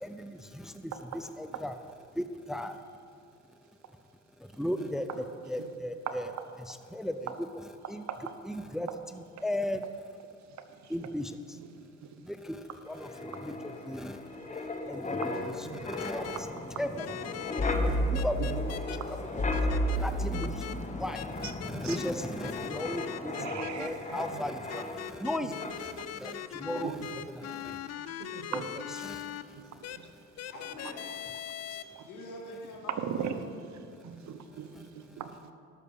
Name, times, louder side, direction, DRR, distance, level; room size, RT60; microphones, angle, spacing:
voice 1, 0.0-0.9 1.4-1.8 2.2-2.8 4.6-6.3 6.6-7.5 7.9-8.0 8.4-9.8 10.9-11.4 12.2-16.5 16.8-17.1 17.8-18.6 18.9-19.0 19.5-19.6 19.9-20.7 21.0-23.3 23.8-27.8 28.5-28.6 29.0-29.3 34.7-34.8, left 1 dB, ahead, 9 dB, 0.5 m, -37 dB
Wind, 12.9-25.3 25.6-25.9, left 1 dB, 25° left, 1.2 m, -34 dB
sound 1, 16.0-16.4 17.0-17.7 18.1-19.0 19.5-20.0 20.3-20.7 21.1-22.1 22.4-23.9 24.7-29.4 29.8-30.0 30.4-31.8, left 11 dB, 60° left, 0.6 m, -40 dB
voice 2, 21.4-22.0 23.4-24.4 26.8-27.1 28.2-28.7 33.0-33.3 34.6-34.7 35.0-35.3, right 8 dB, 65° right, 8 dB, 0.9 m, -38 dB
voice 3, 30.5-31.2 32.1-33.4, left 1 dB, 85° left, 0 dB, 2.3 m, -45 dB
12.5 x 6.2 x 7.0 m, 2.4 s
cardioid pair, 90°, 30 cm